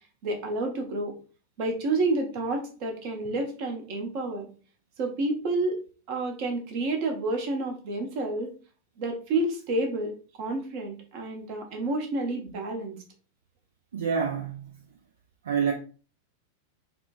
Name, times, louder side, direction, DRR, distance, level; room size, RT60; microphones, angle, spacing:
voice 1, 0.2-1.1 1.6-4.5 5.0-5.8 6.1-8.6 9.0-12.9, right 2 dB, 45° right, 0.9 m, -29 dB
voice 2, 13.9-14.7 15.5-15.7, right 6 dB, 65° right, 0.4 m, -27 dB
4.2 x 2.2 x 2.5 m
figure-of-eight pair, 90°, 0 cm